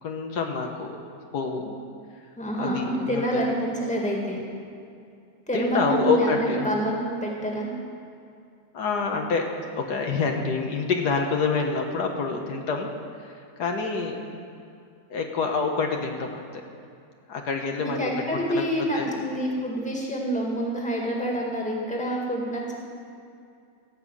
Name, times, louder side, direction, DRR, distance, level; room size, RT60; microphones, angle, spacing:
voice 1, 0.0-0.9 1.3-1.8 2.5-3.5 5.5-6.7 8.7-12.9 13.6-14.4 15.1-16.4 17.3-18.1 18.5-18.6 18.9-19.1, left 4 dB, 70° left, 2 dB, 1.5 m, -27 dB
voice 2, 2.3-4.4 5.5-7.7 17.8-22.8, right 1 dB, 5° left, -2 dB, 1.7 m, -27 dB
16.0 x 5.5 x 8.3 m, 2.5 s
omnidirectional pair, 1.8 m